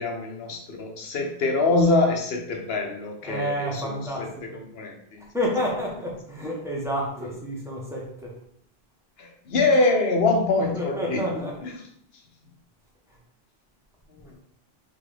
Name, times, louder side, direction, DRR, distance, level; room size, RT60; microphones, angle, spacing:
voice 1, 0.0-5.2 9.2-11.7, left 3 dB, 70° left, 3 dB, 1.0 m, -24 dB
voice 2, 3.2-4.5 5.3-8.3 10.7-11.5, equal, 5° right, -4 dB, 1.1 m, -29 dB
3.8 x 3.6 x 3.4 m, 0.66 s
omnidirectional pair, 1.1 m